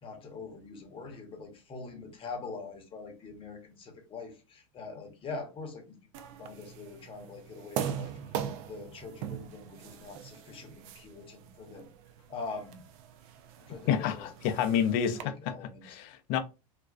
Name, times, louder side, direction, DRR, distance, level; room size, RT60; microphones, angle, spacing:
voice 1, 0.0-8.1 8.7-11.9 12.3-12.8 13.6-14.7 15.2-16.0, left 4 dB, 30° left, 0.8 m, -44 dB
sound 1, 6.1-15.2, right 9 dB, 55° right, 0.4 m, -41 dB
voice 2, 13.9-15.3 15.8-16.4, left 8 dB, 50° left, 0.5 m, -28 dB
2.4 x 2.2 x 2.3 m
hypercardioid pair, 95°, 18 cm